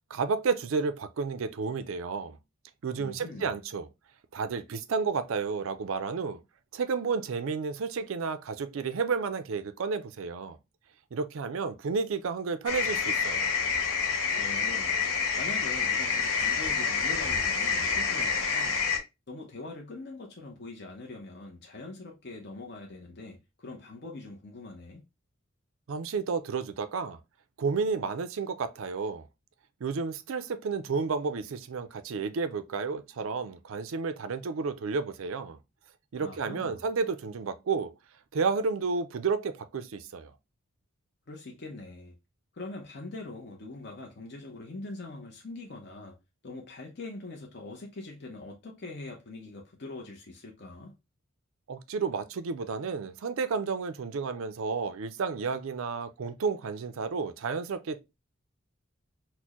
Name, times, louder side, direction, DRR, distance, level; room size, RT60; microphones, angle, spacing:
voice 1, 0.1-2.4 2.8-3.9 4.3-6.4 6.7-10.6 11.1-13.5 25.9-27.2 27.6-29.2 29.8-35.6 36.1-37.9 38.3-40.3 51.7-58.0, right 5 dB, 75° right, 0.4 m, -31 dB
voice 2, 3.0-3.5 14.3-15.0 15.4-18.8 19.3-25.0 36.2-36.8 41.3-42.2 42.5-46.2 46.4-50.9, left 2 dB, 50° left, 0.6 m, -43 dB
sound 1, 12.7-19.0, left 5 dB, 85° left, 0.8 m, -28 dB
4.2 x 2.1 x 2.9 m
head